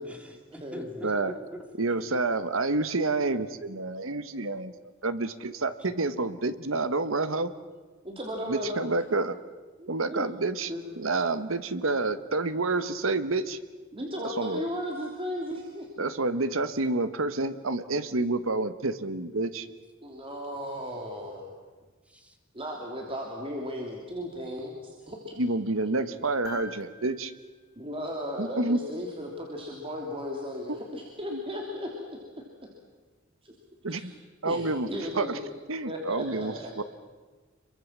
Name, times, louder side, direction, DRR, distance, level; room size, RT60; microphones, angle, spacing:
voice 1, 0.0-2.2 2.8-2.9 5.8-5.9 22.0-22.4, equal, 5° right, 4 dB, 2.9 m, -44 dB
voice 2, 1.8-4.7 5.0-7.5 8.5-9.4 9.9-13.6 14.4-14.6 16.0-19.7 25.4-27.3 28.4-28.8 30.7-30.8 31.3-31.4 33.8-34.1 34.4-34.9 35.1-35.4 35.7-36.8, right 3 dB, 80° right, 12 dB, 1.3 m, -28 dB
voice 3, 8.0-9.0 9.8-10.2 10.7-10.8 13.9-15.9 20.0-21.5 22.5-25.3 27.8-32.2 33.4-33.5 33.8-34.1 34.4-35.4 35.8-36.7, equal, 25° right, 0 dB, 3.1 m, -36 dB
sound 1, 26.4-28.8 30.8-30.9, left 5 dB, 55° left, 3.6 m, -48 dB
27.5 x 23.0 x 7.4 m, 1.3 s
head